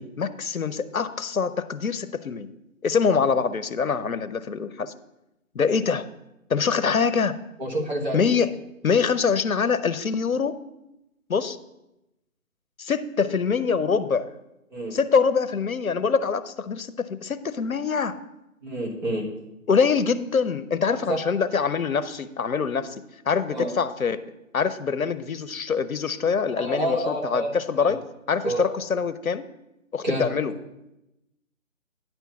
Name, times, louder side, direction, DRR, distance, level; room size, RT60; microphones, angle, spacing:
voice 1, 0.0-2.5 2.8-4.9 5.5-6.0 6.5-7.4 8.1-8.5 8.8-10.6 11.3-11.6 12.8-14.3 14.9-18.1 19.7-23.0 23.3-24.2 24.5-28.0 28.3-29.4 29.9-30.5, left 5 dB, 75° left, 13 dB, 0.7 m, -24 dB
voice 2, 7.6-8.2 14.7-15.0 18.6-19.3 20.9-21.2 23.5-23.7 26.6-27.9 28.4-28.7 30.0-30.3, right 1 dB, 30° right, -2 dB, 1.7 m, -28 dB
9.9 x 4.4 x 6.7 m, 0.91 s
figure-of-eight pair, 155°, 42 cm